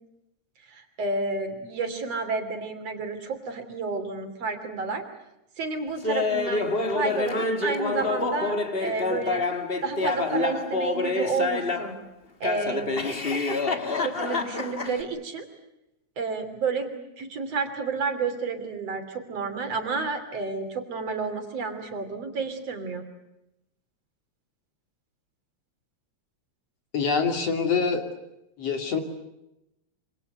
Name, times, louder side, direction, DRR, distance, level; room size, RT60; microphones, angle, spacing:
voice 1, 0.7-5.0 5.6-9.4 9.8-12.0 12.4-12.9 13.7-15.5 16.2-23.0, right 4 dB, 55° right, 7 dB, 4.1 m, -30 dB
Laughter, 6.0-12.0 12.4-15.0, left 3 dB, 25° left, 1.5 m, -27 dB
voice 2, 26.9-28.0 28.6-29.0, left 5 dB, 55° left, 5 dB, 3.8 m, -25 dB
27.0 x 26.5 x 8.0 m, 0.89 s
omnidirectional pair, 3.3 m